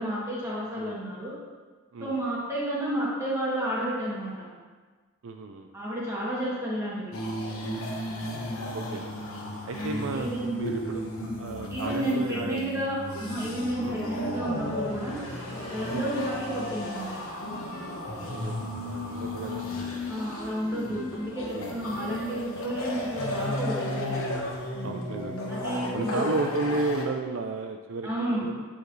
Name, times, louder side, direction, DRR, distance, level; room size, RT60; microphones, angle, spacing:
voice 1, 0.0-1.3 2.0-4.5 5.7-7.1 9.8-10.6 11.7-15.2 15.7-17.2 20.1-24.2 25.5-26.2 28.0-28.4, right 1 dB, 15° right, -7 dB, 1.8 m, -31 dB
voice 2, 5.2-5.7 8.7-9.2 9.7-11.0 11.4-12.6 13.8-14.0 15.9-16.1 18.3-19.7 21.5-21.8 22.9-23.1 24.8-25.4 25.9-28.1 28.4-28.6, right 3 dB, 70° right, 5 dB, 0.4 m, -33 dB
sound 1, 7.1-27.0, left 1 dB, 80° left, 1.2 m, -34 dB
sound 2, 13.1-23.5, equal, 30° left, 1.8 m, -47 dB
9.1 x 5.0 x 3.2 m, 1.4 s
head